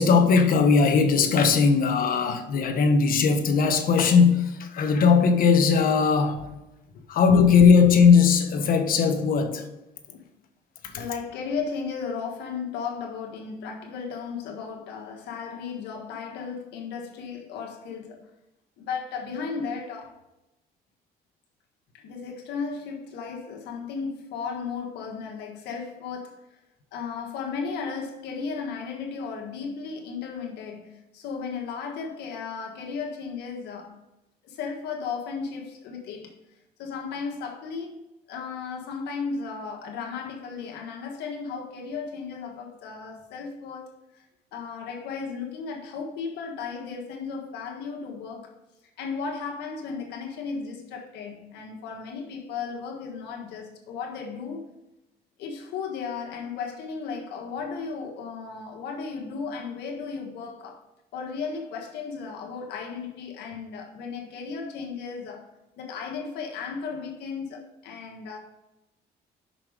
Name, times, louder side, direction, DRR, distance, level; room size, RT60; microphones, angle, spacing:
voice 1, 0.0-6.5 7.1-9.7, left 5 dB, 55° left, 1.2 m, -19 dB
voice 2, 10.9-18.2 18.8-20.2 21.9-26.4 26.9-34.0 34.4-36.4 36.8-38.0 38.3-44.2 44.5-48.5 49.0-54.7 55.4-60.8 61.1-65.5 65.8-68.4, left 5 dB, 80° left, 1.5 m, -35 dB
6.0 x 5.8 x 5.2 m
cardioid pair, 110°, 17 cm